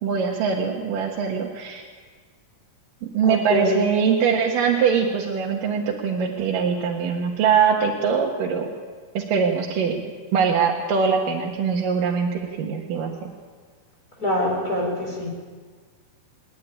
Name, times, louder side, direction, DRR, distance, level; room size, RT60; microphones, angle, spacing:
voice 1, 0.0-1.8 3.1-8.7 9.1-10.0 10.3-13.3, right 6 dB, 85° right, -1 dB, 3.1 m, -22 dB
voice 2, 3.3-3.8 14.2-15.3, left 1 dB, 25° left, -1 dB, 4.7 m, -24 dB
27.0 x 10.5 x 10.0 m, 1.5 s
omnidirectional pair, 3.8 m